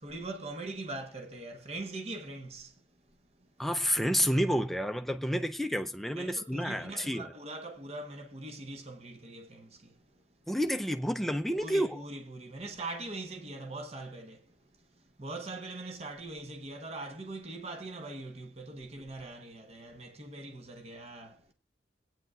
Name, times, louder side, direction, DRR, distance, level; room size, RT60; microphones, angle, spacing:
voice 1, 0.0-2.8 3.4-3.5 6.1-10.2 11.5-21.5, right 2 dB, 35° right, 1.0 m, -42 dB
voice 2, 3.6-7.3 10.5-12.0, equal, ahead, 0.5 m, -30 dB
22.0 x 9.1 x 2.4 m
head